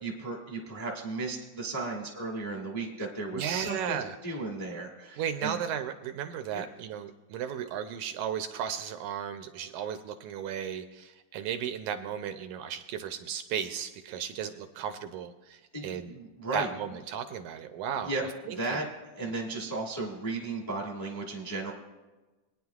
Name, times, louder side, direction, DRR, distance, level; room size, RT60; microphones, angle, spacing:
voice 1, 0.0-5.6 6.5-6.7 15.7-16.7 18.0-18.2 18.5-18.9 19.2-21.7, right 3 dB, 10° left, -1 dB, 0.9 m, -35 dB
voice 2, 3.3-4.2 5.2-16.1 16.5-18.2 18.5-18.9, right 8 dB, 80° right, 7 dB, 1.9 m, -35 dB
22.0 x 9.8 x 2.4 m, 1.2 s
omnidirectional pair, 3.7 m